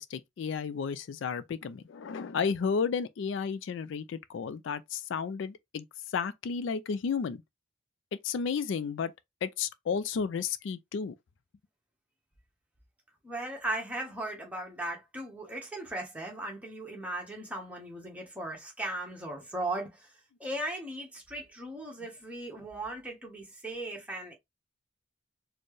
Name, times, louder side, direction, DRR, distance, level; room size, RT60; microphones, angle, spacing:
voice 1, 0.0-7.4 8.2-9.1 9.4-11.1, left 6 dB, 65° left, 0.3 m, -32 dB
voice 2, 13.2-20.1 20.4-24.3, right 1 dB, 5° right, 1.2 m, -37 dB
4.3 x 2.1 x 3.2 m
head